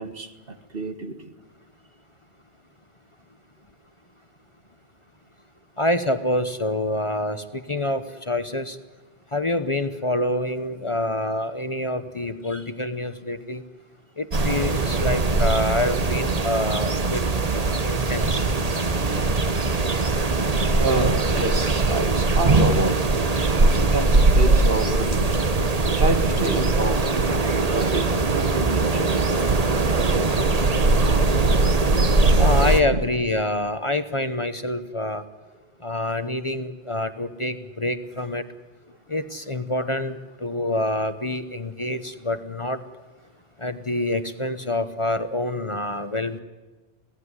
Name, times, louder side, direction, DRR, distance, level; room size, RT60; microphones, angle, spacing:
voice 1, 0.0-1.3 18.1-23.0 23.6-25.3 25.9-27.1 27.5-29.4 31.9-32.0 32.9-33.0, right 2 dB, 60° right, 8 dB, 1.9 m, -29 dB
voice 2, 5.8-8.8 9.3-13.6 14.2-17.2 17.5-18.5 19.1-19.2 32.4-35.2 35.8-38.4 39.1-42.8 43.6-46.4, left 1 dB, 30° left, 10 dB, 1.0 m, -26 dB
sound 1, 14.3-32.8, right 3 dB, 40° right, 1.2 m, -21 dB
26.5 x 17.5 x 9.7 m, 1.2 s
omnidirectional pair, 1.1 m